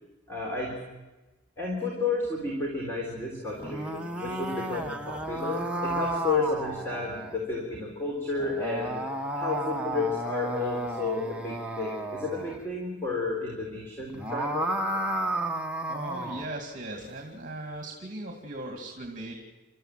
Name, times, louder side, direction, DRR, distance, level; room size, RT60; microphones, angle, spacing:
voice 1, 0.3-0.8 1.6-9.0 9.4-14.8, left 3 dB, 15° left, -2 dB, 3.7 m, -32 dB
sound 1, 3.5-7.4 8.4-12.6 14.0-16.5, right 1 dB, 5° right, 1.2 m, -32 dB
voice 2, 15.9-19.3, right 1 dB, 45° right, 2 dB, 2.4 m, -38 dB
29.0 x 13.5 x 7.6 m, 1.2 s
head